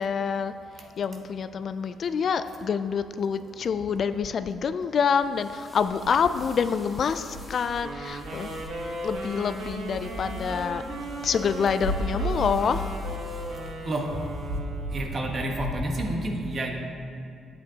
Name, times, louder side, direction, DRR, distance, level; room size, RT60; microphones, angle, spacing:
voice 1, 0.0-8.6 9.0-10.8 11.2-12.9, left 6 dB, 55° left, 11 dB, 0.3 m, -27 dB
sound 1, 5.1-14.6, equal, ahead, 1.6 m, -52 dB
sound 2, 6.0-15.9, equal, 70° left, 2.1 m, -36 dB
Wind instrument woodwind instrument, 7.8-15.3, right 2 dB, 75° right, 1.2 m, -37 dB
voice 2, 14.9-16.7, right 1 dB, 45° right, 1 dB, 1.2 m, -29 dB
10.5 x 8.2 x 2.9 m, 2.5 s
cardioid pair, 90°, 0 cm